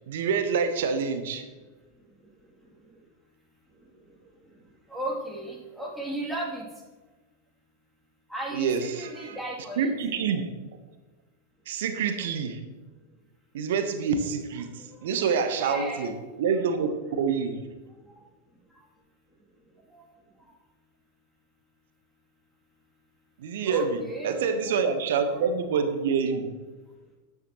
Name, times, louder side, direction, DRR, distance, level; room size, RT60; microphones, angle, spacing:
voice 1, 0.1-1.4 8.5-9.4 9.8-10.5 11.7-12.6 13.5-14.7 15.0-17.6 23.4-26.5, right 6 dB, 55° right, 9 dB, 1.1 m, -27 dB
voice 2, 4.9-6.6 8.3-9.9 14.8-15.1 15.6-16.1 19.9-20.1 20.4-20.5 23.6-24.5, right 1 dB, ahead, -4 dB, 2.9 m, -35 dB
12.5 x 9.6 x 3.1 m, 1.2 s
figure-of-eight pair, 90°, 0 cm